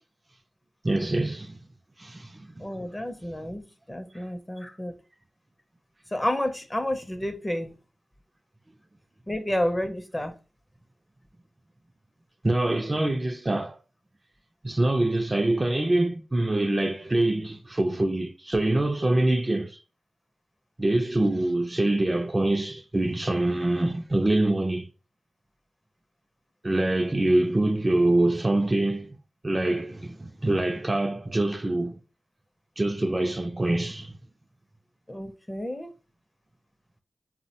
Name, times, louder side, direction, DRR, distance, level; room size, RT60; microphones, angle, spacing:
voice 1, 0.8-1.6 2.0-2.8 4.2-4.3 12.4-13.8 14.6-19.8 20.8-24.9 26.6-29.2 29.4-32.0 32.8-34.1, right 1 dB, 30° right, 0.4 m, -25 dB
voice 2, 2.6-3.6 3.9-4.9 6.1-7.8 9.3-10.3 35.1-35.9, left 1 dB, 20° left, 0.5 m, -30 dB
3.6 x 2.1 x 2.7 m
cardioid pair, 45°, 0 cm